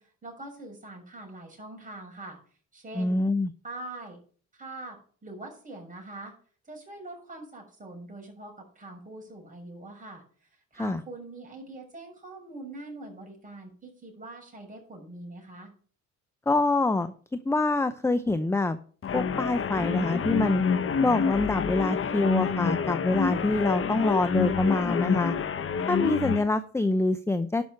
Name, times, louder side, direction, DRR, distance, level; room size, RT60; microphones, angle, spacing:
voice 1, 0.0-2.4 2.7-3.2 3.6-4.2 4.5-6.3 6.6-15.7, right 2 dB, 25° right, 1 dB, 6.7 m, -43 dB
voice 2, 2.9-3.5 10.8-11.0 16.5-18.8 19.1-20.6 21.0-25.3 25.9-27.6, left 2 dB, 10° left, 11 dB, 0.6 m, -25 dB
sound 1, 19.0-26.4, left 6 dB, 45° left, 1.1 m, -28 dB
11.0 x 6.2 x 6.9 m, 0.44 s
cardioid pair, 90°, 30 cm